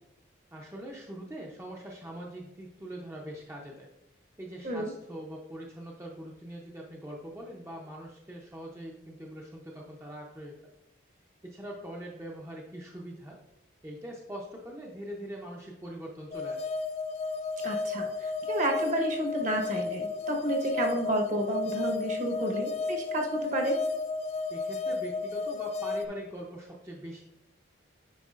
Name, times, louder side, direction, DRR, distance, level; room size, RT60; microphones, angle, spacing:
voice 1, 0.5-3.9 4.4-10.7 11.4-13.4 13.8-16.7 24.5-27.2, right 1 dB, 15° right, -2 dB, 0.6 m, -42 dB
sound 1, 16.3-26.1, left 4 dB, 30° left, 0.3 m, -33 dB
voice 2, 17.6-23.8, right 1 dB, 40° right, 2 dB, 1.0 m, -31 dB
9.3 x 4.6 x 2.5 m, 0.90 s
head